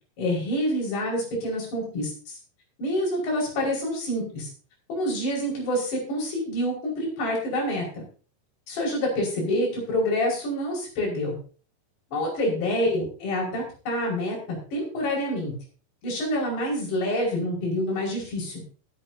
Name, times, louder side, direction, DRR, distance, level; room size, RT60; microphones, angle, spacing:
voice 1, 0.2-2.4 2.8-4.5 4.9-8.0 8.7-11.4 12.1-14.4 14.7-15.5 16.0-18.6, left 1 dB, 75° left, -2 dB, 7.4 m, -27 dB
22.0 x 9.1 x 2.8 m, 0.39 s
omnidirectional pair, 4.8 m